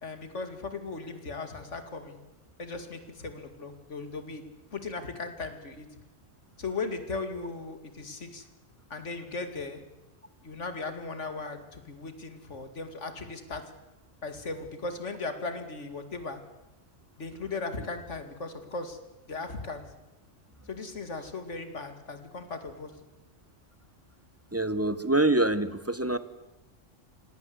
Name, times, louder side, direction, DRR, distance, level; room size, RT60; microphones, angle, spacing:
voice 1, 0.0-2.2 2.6-4.4 4.7-5.9 6.6-8.5 8.9-9.8 10.4-13.6 14.2-16.4 17.2-19.0 19.3-19.8 20.7-22.9, left 3 dB, 75° left, 8 dB, 2.6 m, -37 dB
voice 2, 24.5-26.2, right 2 dB, 15° right, 14 dB, 0.9 m, -25 dB
27.0 x 18.0 x 8.0 m, 1.0 s
omnidirectional pair, 1.2 m